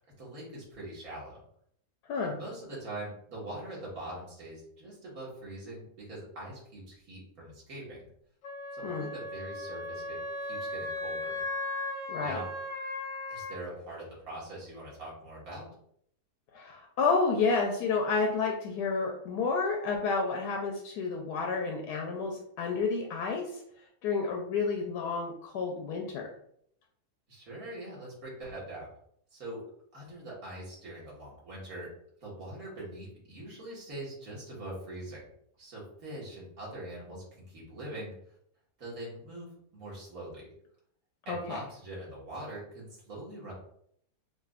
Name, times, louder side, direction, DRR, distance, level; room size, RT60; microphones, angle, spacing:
voice 1, 0.0-1.4 2.2-8.0 8.7-11.4 12.2-12.5 13.3-15.7 27.3-28.9 29.3-29.6 29.9-31.9 32.2-35.2 35.6-38.1 38.8-39.5 39.7-40.5 41.3-43.5, right 1 dB, 60° right, -6 dB, 2.0 m, -43 dB
voice 2, 2.1-2.4 8.8-9.1 12.1-12.4 16.5-23.5 24.0-26.3 41.3-41.6, left 4 dB, 75° left, 1 dB, 1.1 m, -30 dB
Wind instrument woodwind instrument, 8.4-13.5, left 2 dB, 55° left, 0.8 m, -37 dB
4.8 x 2.5 x 2.4 m, 0.67 s
omnidirectional pair, 1.8 m